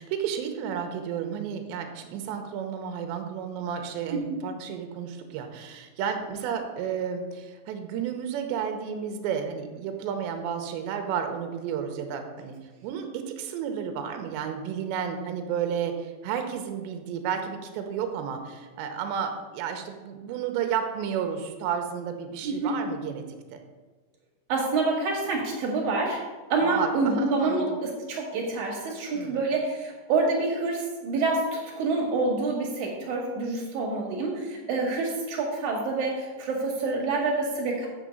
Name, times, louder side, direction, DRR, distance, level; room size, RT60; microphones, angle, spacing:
voice 1, 0.0-12.5 12.8-23.2 23.5-23.6 26.6-27.8 29.1-29.4, right 7 dB, 80° right, 6 dB, 3.0 m, -32 dB
voice 2, 22.4-22.7 24.5-26.2 26.5-37.9, right 3 dB, 55° right, -1 dB, 2.3 m, -27 dB
7.4 x 6.9 x 5.2 m, 1.3 s
omnidirectional pair, 5.3 m